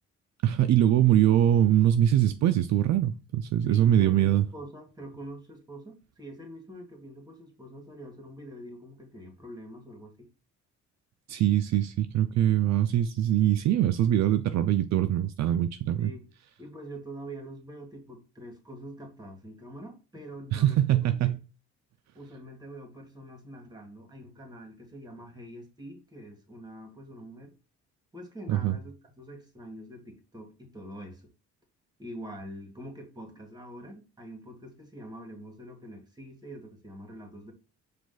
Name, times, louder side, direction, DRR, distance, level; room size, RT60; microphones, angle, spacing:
voice 1, 0.4-4.4 11.3-16.1 20.5-21.4 28.5-28.8, right 11 dB, 65° right, 0.4 m, -23 dB
voice 2, 3.6-10.3 16.0-16.3 16.6-21.3 22.1-27.5 28.1-31.3 32.0-37.5, equal, 15° right, 1.7 m, -45 dB
4.9 x 2.5 x 3.9 m
cardioid pair, 90°, 30 cm